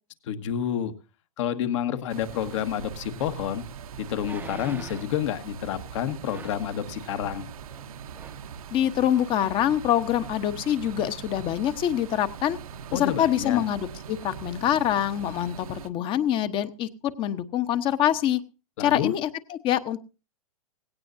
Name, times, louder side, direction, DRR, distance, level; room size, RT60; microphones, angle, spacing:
voice 1, 0.3-0.9 1.4-3.6 4.0-7.5 12.9-13.6 18.8-19.1, left 9 dB, 55° left, 11 dB, 1.5 m, -29 dB
sound 1, 2.1-15.9, right 7 dB, 75° right, 1.0 m, -41 dB
sound 2, 4.2-5.2 6.3-6.7 7.7-7.9 8.1-8.5 9.0-9.1, right 4 dB, 10° right, 0.7 m, -43 dB
voice 2, 8.7-12.6 12.9-18.4 18.8-20.0, left 11 dB, 30° left, 13 dB, 1.0 m, -25 dB
18.0 x 17.0 x 2.6 m, 0.32 s
hypercardioid pair, 135°, 18 cm